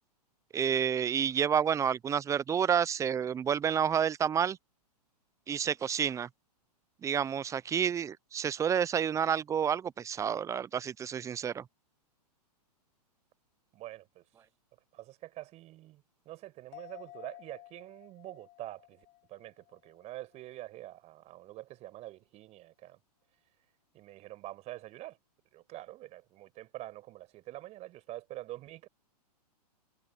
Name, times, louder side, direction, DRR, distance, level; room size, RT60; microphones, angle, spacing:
voice 1, 0.5-4.6 5.5-6.3 7.0-11.6, right 8 dB, 15° right, 0.7 m, -29 dB
voice 2, 13.7-14.2 14.9-23.0 23.9-25.2 25.5-28.9, right 16 dB, 30° right, 6.9 m, -46 dB
sound 1, 16.7-20.4 20.8-20.9, left 17 dB, 35° left, 3.0 m, -53 dB
hypercardioid pair, 120°, 21 cm